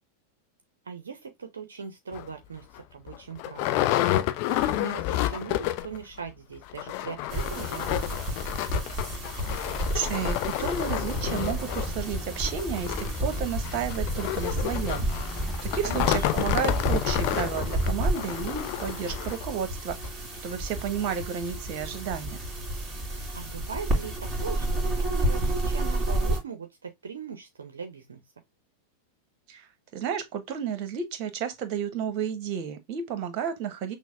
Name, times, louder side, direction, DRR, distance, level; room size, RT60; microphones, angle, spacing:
voice 1, 0.8-4.0 4.5-8.2 15.8-16.5 23.3-28.2, right 6 dB, 70° right, 0.6 m, -40 dB
sound 1, 2.1-2.3 2.8-2.9 3.1-6.0 6.3-6.4 6.7-19.5 20.0-20.1 20.5-20.6, left 14 dB, 45° left, 0.4 m, -30 dB
sound 2, 7.3-26.4, right 1 dB, 20° right, 2.0 m, -31 dB
voice 2, 9.8-15.1 15.6-22.4 29.5-34.0, right 7 dB, 40° right, 0.9 m, -32 dB
sound 3, 11.2-18.1, equal, ahead, 0.8 m, -37 dB
6.1 x 2.0 x 3.3 m
figure-of-eight pair, 90°, 0 cm